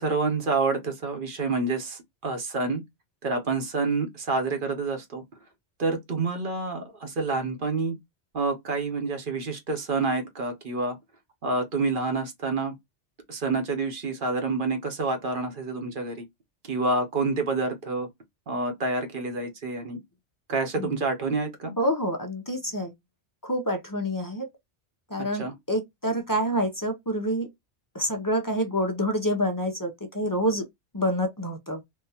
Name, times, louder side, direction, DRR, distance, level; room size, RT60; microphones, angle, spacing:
voice 1, 0.0-2.8 3.2-5.2 5.8-8.0 8.3-11.0 11.4-12.8 13.3-16.2 16.6-18.1 18.5-20.0 20.5-21.7 25.3-25.5, right 3 dB, 50° right, 0.9 m, -28 dB
voice 2, 21.8-22.9 23.4-24.5 25.1-27.5 27.9-30.6 30.9-31.8, equal, 25° left, 0.4 m, -27 dB
3.6 x 2.2 x 2.7 m
omnidirectional pair, 1.2 m